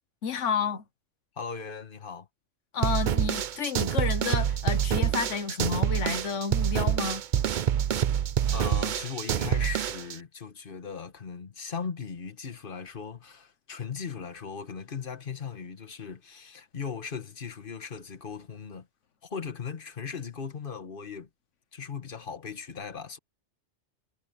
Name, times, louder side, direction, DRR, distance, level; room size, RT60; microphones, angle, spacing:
voice 1, 0.2-0.8 2.7-7.2, left 6 dB, 85° left, 1.4 m, -30 dB
voice 2, 1.4-2.3 8.5-18.9 19.2-21.3 21.7-23.2, left 6 dB, 50° left, 1.7 m, -38 dB
sound 1, 2.8-10.2, right 9 dB, 55° right, 0.6 m, -26 dB
omnidirectional pair, 1.2 m